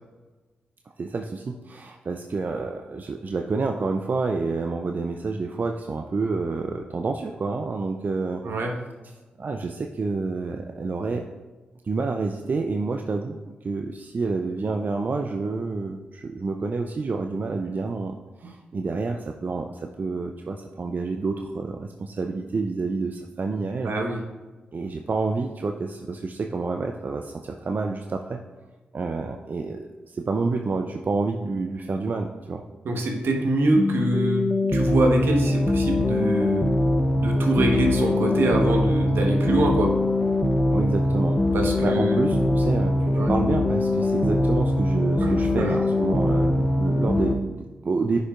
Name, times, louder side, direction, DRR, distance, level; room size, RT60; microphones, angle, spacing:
voice 1, 1.0-8.4 9.4-11.3 11.8-23.9 24.7-28.4 28.9-32.6 40.7-41.4 41.8-48.2, right 3 dB, 50° right, 3 dB, 0.5 m, -28 dB
voice 2, 23.8-24.2 32.8-36.7 37.1-39.9 41.5-42.2 43.1-43.3 45.2-45.7, right 2 dB, 75° right, 1 dB, 1.1 m, -24 dB
sound 1, 33.8-47.3, left 1 dB, 25° left, 0.7 m, -22 dB
9.5 x 5.3 x 2.4 m, 1.3 s
supercardioid pair, 40°, 4 cm